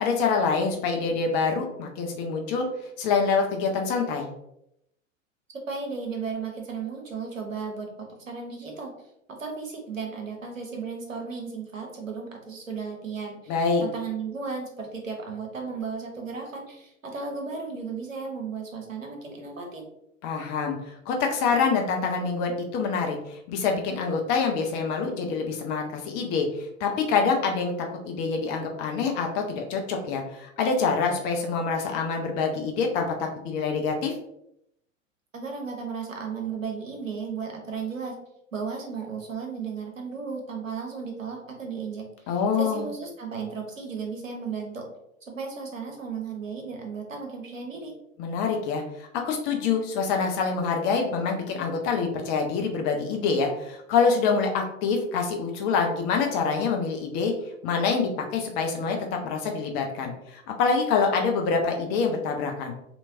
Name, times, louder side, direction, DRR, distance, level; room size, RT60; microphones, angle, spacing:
voice 1, 0.0-2.7 3.0-4.3 13.5-13.8 20.2-27.7 28.1-34.1 42.3-42.9 48.2-57.3 57.6-62.7, left 5 dB, 30° left, 2 dB, 0.5 m, -26 dB
voice 2, 5.7-8.9 9.4-13.5 13.8-19.9 35.3-38.2 38.5-42.3 42.6-44.8 45.2-48.0, right 5 dB, 80° right, 1 dB, 0.9 m, -35 dB
3.2 x 2.9 x 2.6 m, 0.79 s
figure-of-eight pair, 90°, 38 cm